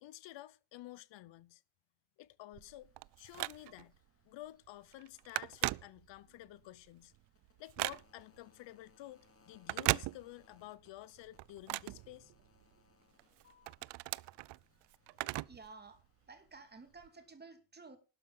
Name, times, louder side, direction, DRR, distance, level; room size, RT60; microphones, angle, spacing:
voice 1, 0.0-1.6 2.2-3.9 4.2-7.1 7.6-12.3, left 15 dB, 80° left, 0.9 m, -52 dB
Telephone, 2.5-4.0 4.5-4.7 4.9-6.4 6.8-8.4 9.5-10.7 11.0-12.7 13.2-15.7 16.0-16.1 17.0-17.1, right 19 dB, 70° right, 0.5 m, -38 dB
sound 1, 2.6-17.3, left 5 dB, 30° left, 2.6 m, -71 dB
voice 2, 15.4-18.0, right 4 dB, 20° right, 2.7 m, -54 dB
12.0 x 7.9 x 7.2 m
cardioid pair, 130°, 44 cm